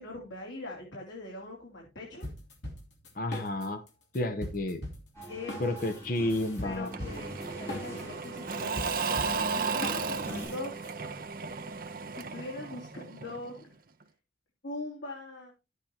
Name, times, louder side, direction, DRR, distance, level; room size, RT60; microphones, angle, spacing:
voice 1, 0.0-2.3 5.3-5.8 6.6-10.7 12.1-13.8 14.6-15.5, left 2 dB, 90° left, -2 dB, 2.7 m, -42 dB
sound 1, 2.2-10.9, left 1 dB, 75° left, 3.1 m, -41 dB
voice 2, 3.1-3.8 4.1-4.8 5.6-6.9, left 1 dB, 50° left, 9 dB, 0.8 m, -31 dB
sound 2, 5.1-10.5, equal, 15° left, 6.9 m, -43 dB
Engine / Mechanisms / Drill, 6.9-13.6, right 5 dB, 50° right, 0.7 m, -34 dB
12.0 x 8.1 x 2.9 m, 0.26 s
head